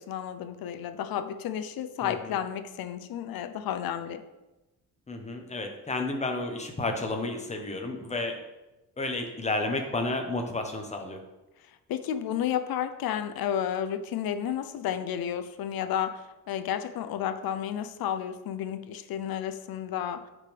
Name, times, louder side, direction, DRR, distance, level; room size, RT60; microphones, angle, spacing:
voice 1, 0.0-4.2 11.9-20.3, left 9 dB, 75° left, 10 dB, 0.6 m, -32 dB
voice 2, 2.0-2.3 5.1-8.4 9.0-11.2, left 2 dB, 20° left, 4 dB, 1.0 m, -31 dB
9.4 x 5.3 x 3.4 m, 1.0 s
cardioid pair, 130°, 36 cm